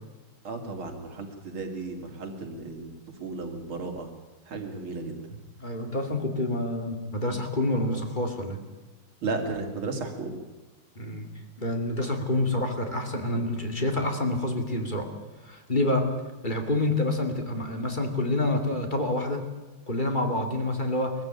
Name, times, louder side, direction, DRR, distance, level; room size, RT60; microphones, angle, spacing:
voice 1, 0.4-2.9 3.2-4.1 4.5-5.1 9.2-10.4, right 3 dB, 75° right, 3 dB, 3.5 m, -34 dB
voice 2, 5.6-8.6 11.0-11.3 11.6-15.1 15.4-16.1 16.4-19.4 19.9-21.2, left 1 dB, 20° left, 4 dB, 2.4 m, -27 dB
21.5 x 14.5 x 9.0 m, 1.2 s
omnidirectional pair, 2.3 m